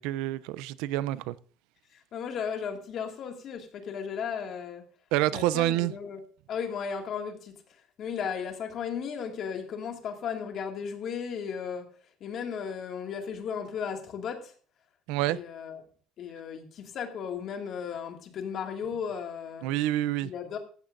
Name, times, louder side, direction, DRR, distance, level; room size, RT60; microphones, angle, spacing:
voice 1, 0.0-1.3 5.1-5.9 15.1-15.4 19.6-20.3, right 15 dB, 90° right, 0.5 m, -27 dB
voice 2, 1.9-4.9 5.3-6.2 6.5-11.9 12.2-14.5 15.3-15.8 16.2-19.7 20.2-20.6, left 7 dB, 40° left, 2.1 m, -35 dB
16.0 x 14.0 x 2.6 m
cardioid pair, 170°, 0 cm